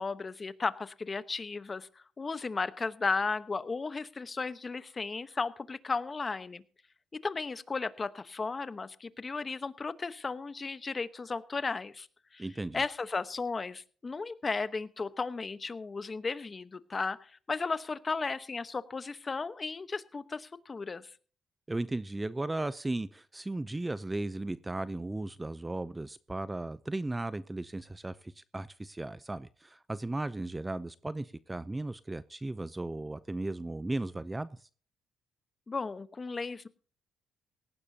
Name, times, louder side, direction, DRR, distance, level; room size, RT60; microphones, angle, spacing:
voice 1, 0.0-1.9 2.2-6.6 7.1-12.1 12.3-12.5 12.7-21.1 35.7-36.7, left 4 dB, 30° left, 13 dB, 1.0 m, -35 dB
voice 2, 12.4-12.8 21.7-34.7, right 2 dB, 15° right, 15 dB, 0.5 m, -36 dB
18.0 x 15.0 x 2.8 m, 0.41 s
cardioid pair, 90°, 0 cm